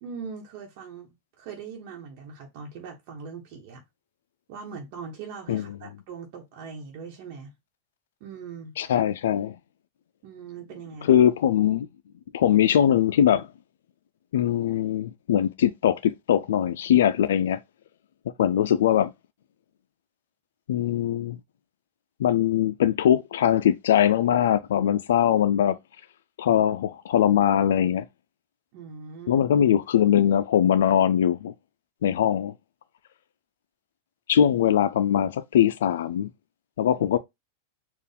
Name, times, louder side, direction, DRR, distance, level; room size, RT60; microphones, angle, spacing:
voice 1, 0.0-3.8 4.5-7.5 8.2-8.7 10.2-11.1 28.7-29.5 36.9-37.0, right 5 dB, 55° right, 1.1 m, -41 dB
voice 2, 8.8-9.5 11.1-11.9 12.3-13.5 14.3-17.6 18.4-19.1 20.7-21.4 22.2-25.8 26.4-28.0 29.3-31.5 32.0-32.5 34.3-36.3 36.8-37.2, left 10 dB, 80° left, 0.4 m, -21 dB
4.5 x 2.4 x 3.4 m
supercardioid pair, 130°, 0 cm